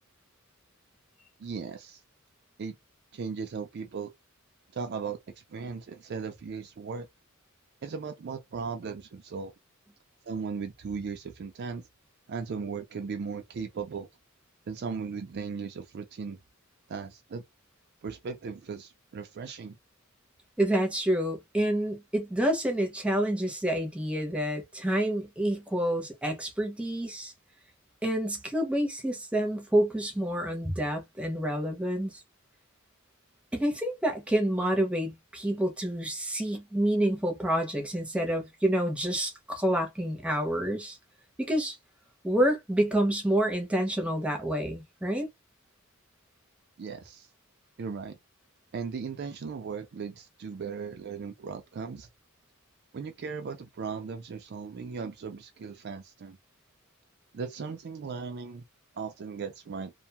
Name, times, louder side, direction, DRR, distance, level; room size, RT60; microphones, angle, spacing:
voice 1, 1.4-2.0 2.6-2.8 3.1-4.1 4.7-5.2 5.5-7.1 7.8-9.5 10.2-11.8 12.3-14.1 14.7-16.4 16.9-17.4 18.0-19.8 46.8-47.3 47.8-48.2 48.7-52.1 52.9-56.4 57.3-58.6 59.0-59.9, right 5 dB, 50° right, 0.4 m, -37 dB
voice 2, 20.6-27.3 28.0-32.2 33.5-41.0 41.4-41.8 42.2-45.3, right 1 dB, 5° right, 0.7 m, -28 dB
2.5 x 2.2 x 2.8 m
head